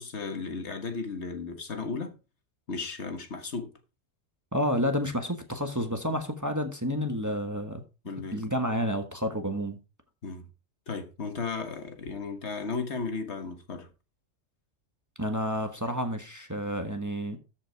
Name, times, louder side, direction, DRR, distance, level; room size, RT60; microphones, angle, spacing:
voice 1, 0.0-2.1 2.7-3.7 8.0-8.5 10.2-10.5 10.9-13.9, left 4 dB, 65° left, 1.6 m, -35 dB
voice 2, 4.5-7.8 8.3-9.8 15.2-17.4, equal, 15° right, 1.3 m, -30 dB
13.5 x 5.5 x 4.6 m
omnidirectional pair, 1.3 m